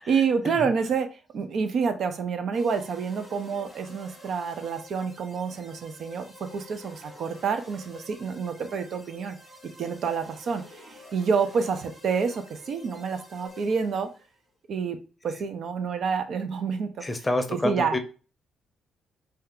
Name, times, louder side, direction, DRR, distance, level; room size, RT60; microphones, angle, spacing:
voice 1, 0.1-9.4 9.8-10.6 11.1-14.1 14.7-15.0 15.2-17.1 17.5-17.9, right 5 dB, 60° right, 7 dB, 0.5 m, -28 dB
sound 1, 2.5-14.3, left 2 dB, 20° right, 1.4 m, -49 dB
voice 2, 17.0-18.0, left 1 dB, 15° left, 7 dB, 0.6 m, -28 dB
2.7 x 2.3 x 3.5 m, 0.34 s
cardioid pair, 90°, 0 cm